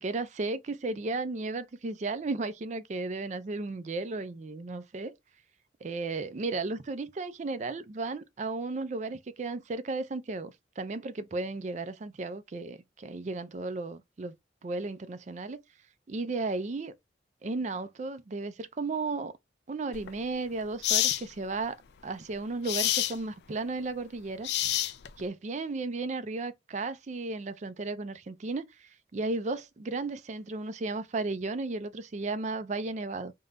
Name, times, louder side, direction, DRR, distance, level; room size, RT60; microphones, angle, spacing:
voice 1, 0.0-5.2 5.8-14.3 14.6-15.6 16.1-16.9 17.4-19.3 19.7-21.8 22.0-24.5 25.2-33.3, right 3 dB, 40° right, 0.4 m, -34 dB
sound 1, 19.9-20.1 20.8-21.2 22.6-23.2 24.4-25.2, left 13 dB, 60° left, 0.4 m, -27 dB
3.7 x 2.1 x 3.8 m
head